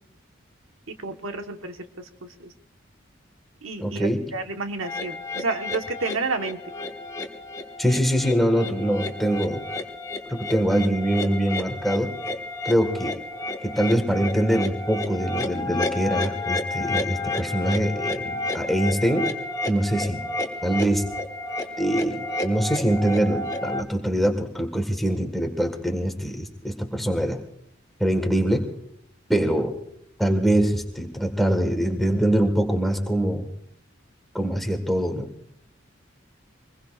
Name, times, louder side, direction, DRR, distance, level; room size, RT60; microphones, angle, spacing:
voice 1, 1.0-1.7 2.4-2.5 3.6-6.6, right 3 dB, 90° right, 5 dB, 1.4 m, -30 dB
voice 2, 3.8-4.2 7.8-9.6 10.3-12.2 12.7-13.1 13.6-19.3 19.7-20.2 20.6-21.1 21.8-27.4 28.0-28.7 29.3-29.7 30.2-33.5 34.3-35.3, right 1 dB, ahead, 4 dB, 1.6 m, -23 dB
sound 1, 4.8-23.8, left 2 dB, 15° left, 1.4 m, -31 dB
25.0 x 20.5 x 2.5 m, 0.73 s
head